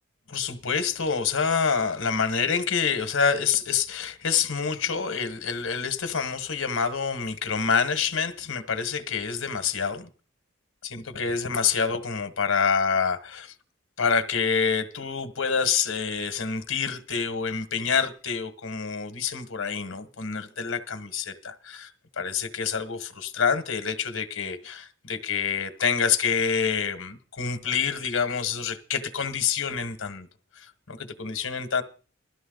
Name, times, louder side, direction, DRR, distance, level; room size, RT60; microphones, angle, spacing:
voice 1, 0.3-10.1 10.8-13.5 14.0-21.9 22.2-30.3 30.5-31.8, left 6 dB, 85° left, 1.4 m, -27 dB
17.0 x 12.5 x 3.9 m
head